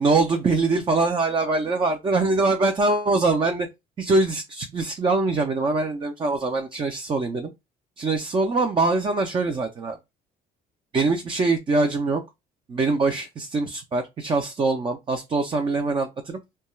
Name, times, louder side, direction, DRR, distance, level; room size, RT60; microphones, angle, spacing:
voice 1, 0.0-3.7 4.0-7.5 8.0-10.0 10.9-12.2 12.7-16.4, right 3 dB, 30° right, 0.4 m, -23 dB
2.3 x 2.2 x 2.9 m
cardioid pair, 110°, 17 cm